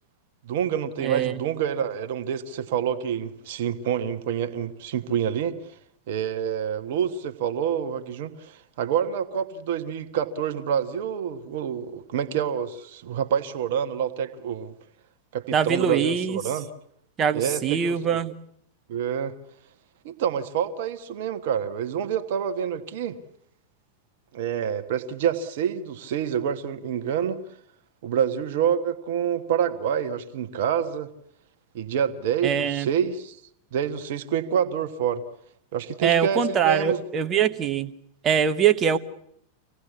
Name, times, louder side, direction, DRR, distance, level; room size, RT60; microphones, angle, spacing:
voice 1, 0.4-5.6 6.1-14.7 15.3-16.7 17.3-18.2 18.9-19.3 20.0-23.2 24.3-27.4 28.0-31.1 31.7-33.4 33.7-35.2 35.7-37.0, right 8 dB, 55° right, 10 dB, 1.5 m, -27 dB
voice 2, 1.0-1.4 15.5-16.4 17.2-18.3 32.4-32.9 36.0-37.9 38.2-39.0, right 8 dB, 30° right, 11 dB, 1.2 m, -23 dB
25.5 x 18.0 x 8.5 m, 0.71 s
figure-of-eight pair, 90°, 0 cm